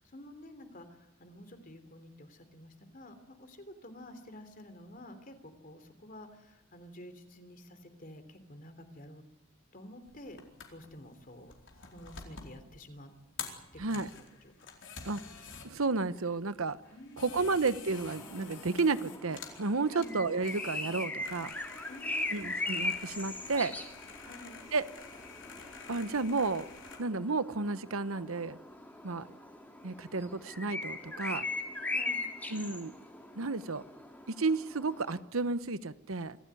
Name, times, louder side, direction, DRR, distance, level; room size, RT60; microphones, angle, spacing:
voice 1, 0.0-9.2 9.7-10.4 10.7-11.5 11.8-13.1 13.7-14.5 16.9-17.5 19.9-20.2 21.9-22.6 24.2-24.6 31.8-32.2, left 1 dB, 40° left, 9 dB, 3.2 m, -50 dB
sound 1, 10.1-27.0, left 5 dB, 60° left, 4.3 m, -49 dB
voice 2, 13.8-14.1 15.0-15.2 15.6-16.8 17.2-21.5 22.3-23.7 24.7-24.8 25.9-26.6 27.0-28.6 29.0-29.3 29.8-31.5 32.5-32.9 33.4-33.8 34.3-36.4, right 3 dB, 90° right, 14 dB, 1.0 m, -32 dB
sound 2, 17.9-35.2, left 2 dB, 10° left, 2.4 m, -40 dB
26.0 x 15.0 x 9.7 m, 0.89 s
head